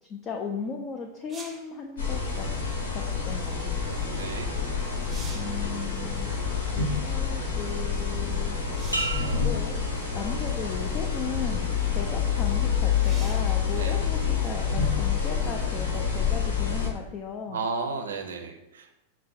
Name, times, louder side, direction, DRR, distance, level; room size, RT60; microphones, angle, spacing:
voice 1, 0.1-2.5 2.9-3.8 5.3-6.3 6.7-8.6 9.4-17.6, left 5 dB, 30° left, 1 dB, 0.4 m, -36 dB
sound 1, 1.3-1.7 4.4-4.5 4.9-5.6 8.7-9.3 10.3-10.4 13.0-13.6 17.1-17.2, right 3 dB, 15° right, 0.7 m, -44 dB
sound 2, 2.0-16.9, left 6 dB, 70° left, 0.9 m, -27 dB
voice 2, 4.1-4.6 13.7-14.0 17.5-19.0, right 4 dB, 65° right, 4 dB, 0.5 m, -33 dB
sound 3, 8.9-10.7 11.2-11.7, right 2 dB, 85° left, 0.5 m, -35 dB
5.9 x 2.1 x 4.1 m, 0.91 s
figure-of-eight pair, 90°, 0 cm